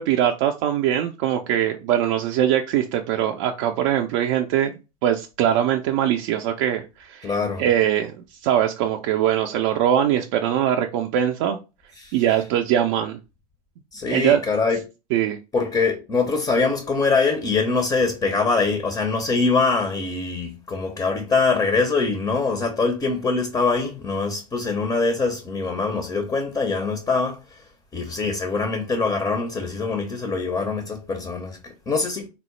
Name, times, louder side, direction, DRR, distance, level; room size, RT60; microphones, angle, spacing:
voice 1, 0.0-7.3 7.6-8.2 8.4-11.6 12.1-13.2 14.1-14.4 15.1-15.4, right 10 dB, 50° right, 0.4 m, -22 dB
voice 2, 7.2-7.6 12.0-12.2 13.9-14.8 15.5-27.6 27.9-32.3, left 4 dB, 15° left, 0.5 m, -23 dB
3.5 x 2.0 x 3.0 m
hypercardioid pair, 95°, 20 cm